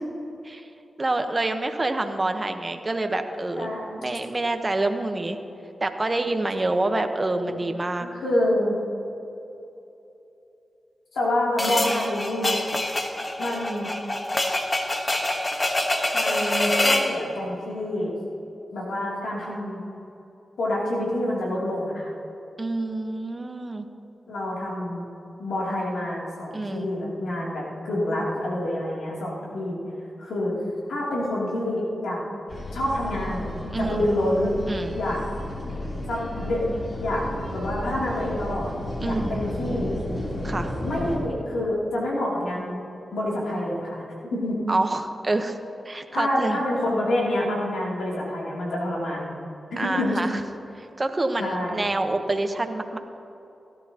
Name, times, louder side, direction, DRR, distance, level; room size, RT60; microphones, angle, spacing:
voice 1, 1.0-3.7 4.0-5.4 5.8-8.1 22.6-23.9 26.5-26.9 33.7-34.0 34.7-35.0 39.0-39.5 40.4-40.7 44.7-45.6 45.8-46.6 49.8-50.4 50.8-53.0, right 2 dB, 35° right, 6 dB, 1.1 m, -27 dB
voice 2, 3.5-4.0 7.4-7.5 8.0-8.8 11.1-12.6 13.4-13.9 15.8-15.9 16.1-18.1 18.7-19.8 20.6-22.1 24.3-25.0 25.4-29.8 30.2-30.6 30.9-32.2 32.7-34.5 34.9-35.2 36.1-37.2 37.5-38.7 39.0-39.9 40.8-42.8 43.1-44.6 46.1-49.3 49.8-50.2 51.4-51.7, left 1 dB, 85° left, -5 dB, 3.0 m, -27 dB
sound 1, 11.6-17.1, left 1 dB, 35° left, 1.4 m, -25 dB
sound 2, 32.5-41.2, left 1 dB, 55° left, 3.4 m, -33 dB
17.5 x 12.5 x 3.0 m, 2.9 s
cardioid pair, 45°, 0 cm